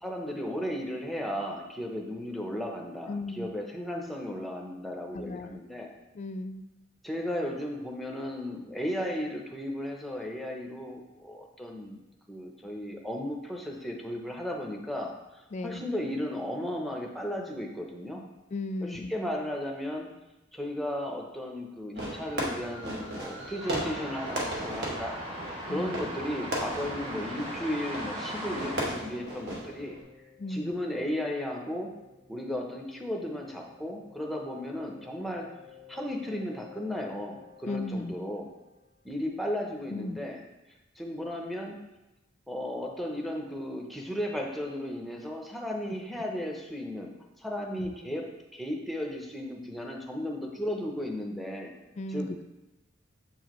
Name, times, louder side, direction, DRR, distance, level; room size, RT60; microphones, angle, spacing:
voice 1, 0.0-5.9 7.0-12.0 12.3-18.2 18.8-20.1 20.5-25.2 25.7-30.0 30.5-31.9 32.3-35.5 35.9-38.5 39.0-40.4 41.0-41.8 42.5-48.2 48.5-51.7 52.1-52.3, left 1 dB, ahead, 0 dB, 0.7 m, -35 dB
voice 2, 3.1-3.5 5.1-5.6 6.1-6.6 15.5-15.8 18.5-19.1 25.7-25.9 30.4-30.7 37.7-38.1 39.9-40.2 47.8-47.9 52.0-52.4, left 2 dB, 35° left, 10 dB, 0.3 m, -35 dB
Fireworks, 22.0-30.0, right 1 dB, 60° right, 1.3 m, -36 dB
sound 1, 23.6-28.8, equal, 30° right, 1.9 m, -38 dB
sound 2, 27.6-39.2, left 7 dB, 90° right, 2.0 m, -54 dB
7.3 x 4.7 x 3.0 m, 1.0 s
head